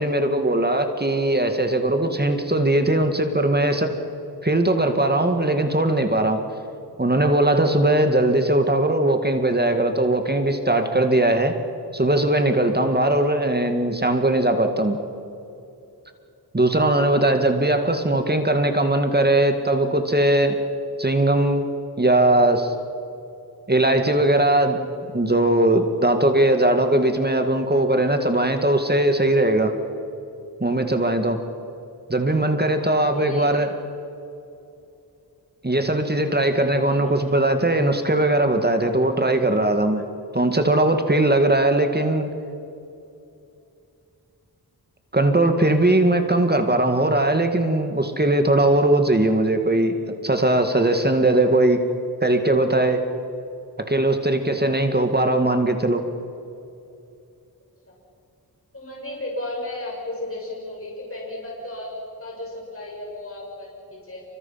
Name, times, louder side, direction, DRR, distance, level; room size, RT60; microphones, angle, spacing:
voice 1, 0.0-3.9 4.4-6.4 7.0-11.5 11.9-15.0 16.5-20.6 21.0-21.7 22.0-22.7 23.7-24.8 25.1-29.7 30.6-31.4 32.1-33.7 35.6-40.0 40.3-42.3 45.1-50.0 50.2-51.8 52.2-53.0 53.8-56.0, right 1 dB, 25° right, 6 dB, 2.0 m, -20 dB
voice 2, 17.0-17.3 17.8-17.9 32.7-33.5 36.8-37.4 57.9-58.0 58.7-61.9 62.2-64.2, left 1 dB, 35° left, -3 dB, 6.5 m, -34 dB
28.0 x 24.5 x 5.9 m, 2.7 s
wide cardioid pair, 65°, 39 cm